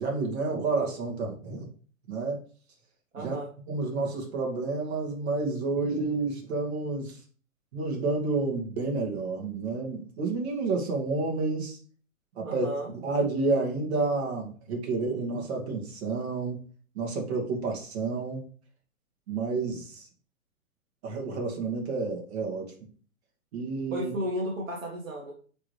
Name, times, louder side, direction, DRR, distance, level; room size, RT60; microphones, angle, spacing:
voice 1, 0.0-1.7 2.1-2.4 3.2-3.4 3.7-7.2 7.7-11.8 12.4-12.7 13.0-16.6 16.9-18.4 19.3-20.1 21.0-22.7 23.5-24.1, right 3 dB, 45° right, -1 dB, 2.3 m, -30 dB
voice 2, 3.1-3.5 12.4-12.9 23.9-25.3, equal, 65° right, -2 dB, 1.9 m, -33 dB
9.2 x 3.5 x 3.3 m, 0.42 s
hypercardioid pair, 130°, 42 cm